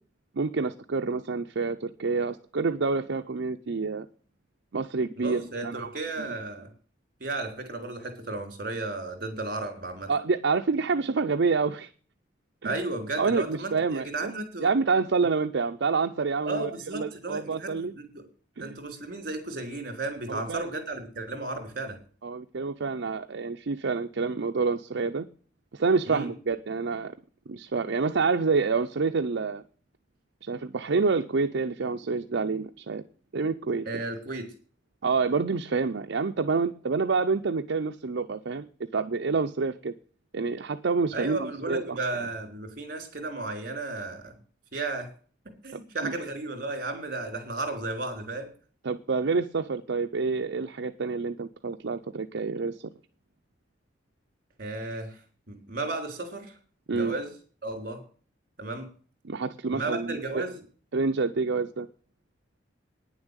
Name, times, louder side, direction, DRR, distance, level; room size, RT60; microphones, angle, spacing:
voice 1, 0.3-4.1 4.7-5.9 6.2-6.4 10.1-11.9 12.6-12.9 13.2-14.3 14.6-17.9 18.6-18.7 20.3-20.7 22.2-25.3 25.7-27.1 27.5-29.6 30.4-33.0 33.3-33.9 35.0-38.7 38.9-39.9 40.3-42.0 46.0-46.2 48.8-52.9 56.9-57.1 59.2-60.4 60.9-61.9, right 4 dB, 70° right, 6 dB, 0.6 m, -28 dB
voice 2, 5.2-6.7 7.2-10.1 12.6-14.7 15.2-15.3 16.4-18.2 18.6-22.0 26.1-26.3 33.8-34.5 41.1-44.3 44.7-45.1 45.6-48.5 54.6-55.2 55.5-56.5 56.9-57.3 57.6-58.0 58.6-58.9 59.7-60.6, right 2 dB, 50° right, 5 dB, 3.4 m, -34 dB
9.8 x 7.2 x 8.0 m, 0.42 s
head